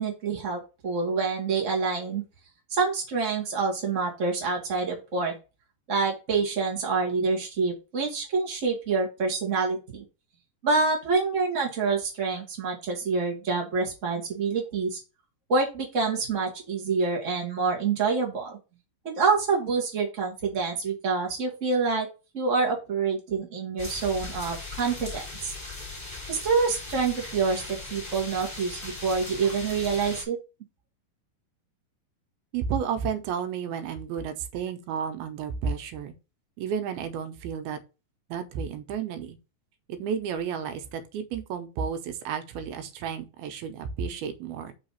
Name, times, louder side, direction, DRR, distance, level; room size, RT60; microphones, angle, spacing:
voice 1, 0.0-2.2 2.7-5.3 5.9-10.0 10.6-15.0 15.5-18.6 19.0-22.1 22.3-25.6 26.3-30.4, right 4 dB, 65° right, -1 dB, 0.7 m, -27 dB
sound 1, 23.8-30.2, left 3 dB, 5° left, 2.2 m, -39 dB
voice 2, 32.5-36.1 36.6-37.8 38.3-39.4 39.9-44.7, right 7 dB, 85° right, 8 dB, 2.7 m, -32 dB
5.7 x 3.9 x 5.4 m, 0.30 s
omnidirectional pair, 4.3 m